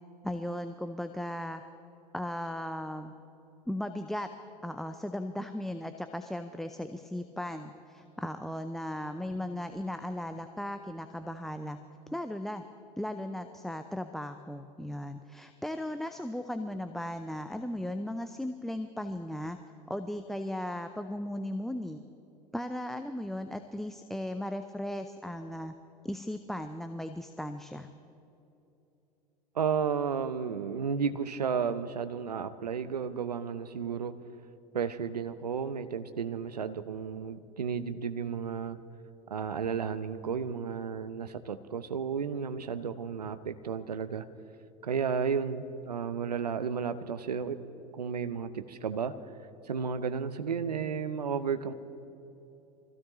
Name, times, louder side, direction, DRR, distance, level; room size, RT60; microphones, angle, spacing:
voice 1, 0.2-1.6 2.1-3.1 3.7-4.3 4.6-11.8 12.1-12.6 13.0-19.6 19.9-22.0 22.5-25.7 26.0-27.9, left 1 dB, ahead, 8 dB, 0.6 m, -36 dB
voice 2, 29.5-34.1 34.7-38.8 39.3-44.2 44.8-47.6 47.9-49.1 49.6-51.7, right 6 dB, 85° right, 12 dB, 0.8 m, -33 dB
25.0 x 16.0 x 3.1 m, 2.9 s
figure-of-eight pair, 80°, 20 cm